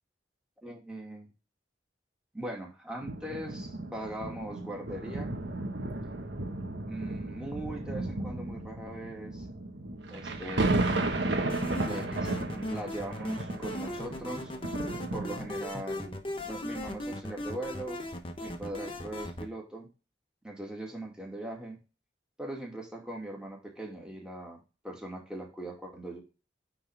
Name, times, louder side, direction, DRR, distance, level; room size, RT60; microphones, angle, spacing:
voice 1, 0.6-1.3 2.3-5.3 6.9-9.4 10.1-10.8 11.8-14.5 15.1-16.2 16.5-18.0 18.4-19.9 20.4-21.8 22.4-26.2, right 1 dB, 5° right, -1 dB, 2.2 m, -40 dB
sound 1, 3.0-15.8 16.5-16.6, right 2 dB, 75° right, 1.3 m, -34 dB
sound 2, 11.5-19.5, left 1 dB, 30° left, 1.0 m, -38 dB
9.5 x 3.9 x 3.5 m, 0.30 s
head